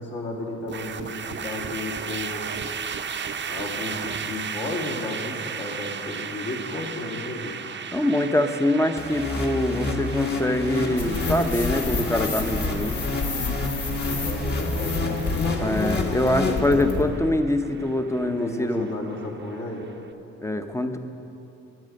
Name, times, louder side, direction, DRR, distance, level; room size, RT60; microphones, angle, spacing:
voice 1, 0.0-2.6 3.5-7.6 14.2-16.8 18.2-19.9, left 2 dB, 55° left, -2 dB, 2.7 m, -33 dB
sound 1, 0.7-19.9, right 6 dB, 40° right, 0.7 m, -36 dB
voice 2, 7.9-13.0 15.6-18.9 20.4-21.0, left 1 dB, 10° left, 7 dB, 0.7 m, -24 dB
sound 2, 9.0-17.1, left 3 dB, 35° left, 1.5 m, -29 dB
sound 3, 11.0-17.1, left 3 dB, 75° left, 2.5 m, -30 dB
10.5 x 9.7 x 7.6 m, 3.0 s
cardioid pair, 90°, 30 cm